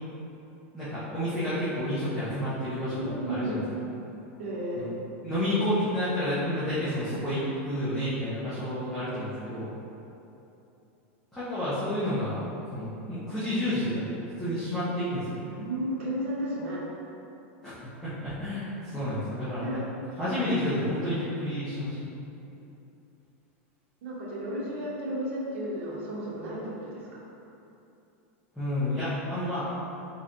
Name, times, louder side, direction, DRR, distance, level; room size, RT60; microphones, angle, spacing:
voice 1, 0.7-3.0 3.3-3.6 4.8-4.9 5.2-9.7 11.3-12.4 12.7-15.2 17.6-17.7 18.0-19.8 20.2-22.1 28.5-29.8, left 1 dB, ahead, -15 dB, 0.8 m, -30 dB
voice 2, 3.0-3.7 4.4-4.9 15.5-16.8 19.6-19.8 24.0-27.2, right 1 dB, 70° right, -5 dB, 1.0 m, -33 dB
4.0 x 3.2 x 2.6 m, 2.9 s
supercardioid pair, 160°, 7 cm